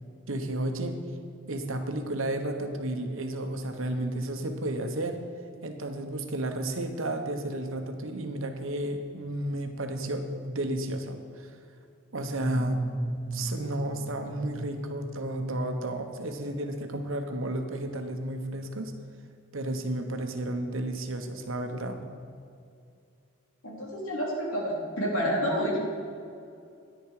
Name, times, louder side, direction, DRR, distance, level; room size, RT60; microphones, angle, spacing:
voice 1, 0.3-0.9 1.5-5.2 5.6-11.5 12.1-12.8 13.3-18.9 19.5-22.1, right 1 dB, 70° right, 5 dB, 1.1 m, -32 dB
sound 1, 12.3-16.0, right 1 dB, 5° right, 0.7 m, -36 dB
voice 2, 23.6-25.8, equal, 80° left, -2 dB, 2.8 m, -29 dB
10.5 x 10.5 x 4.9 m, 2.5 s
head